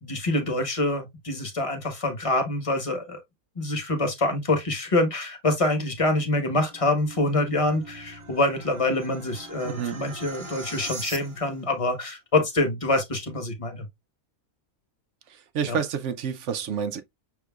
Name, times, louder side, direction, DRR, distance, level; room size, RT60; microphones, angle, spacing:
voice 1, 0.0-3.2 3.6-13.9 15.6-15.8, left 2 dB, 25° left, 1.2 m, -26 dB
sound 1, 6.7-11.7, right 3 dB, 25° right, 0.8 m, -41 dB
voice 2, 15.5-17.0, right 7 dB, 65° right, 0.9 m, -28 dB
6.3 x 3.7 x 2.3 m
omnidirectional pair, 1.5 m